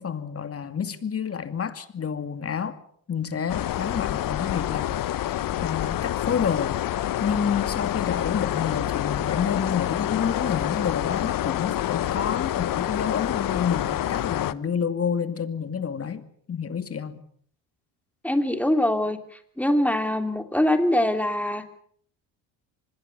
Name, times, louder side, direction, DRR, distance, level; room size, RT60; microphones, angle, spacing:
voice 1, 0.0-2.8 3.1-6.8 7.2-17.2, left 7 dB, 35° left, 2.5 m, -29 dB
sound 1, 3.5-14.5, left 12 dB, 50° left, 1.1 m, -27 dB
voice 2, 18.2-19.2 19.6-21.6, left 1 dB, 5° left, 3.3 m, -23 dB
25.0 x 21.0 x 6.9 m
supercardioid pair, 90°, 42 cm